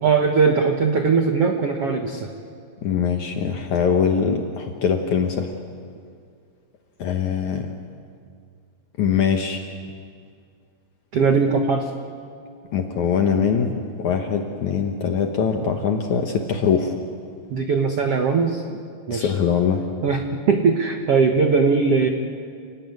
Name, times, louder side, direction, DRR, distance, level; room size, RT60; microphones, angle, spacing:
voice 1, 0.0-2.3 11.1-11.9 17.5-18.6 19.1-19.3 20.0-22.1, right 5 dB, 75° right, 4 dB, 1.4 m, -20 dB
voice 2, 2.8-5.5 7.0-7.7 9.0-9.7 12.7-17.0 19.1-19.9, left 7 dB, 65° left, 4 dB, 2.0 m, -22 dB
29.0 x 17.5 x 9.6 m, 2.2 s
omnidirectional pair, 4.8 m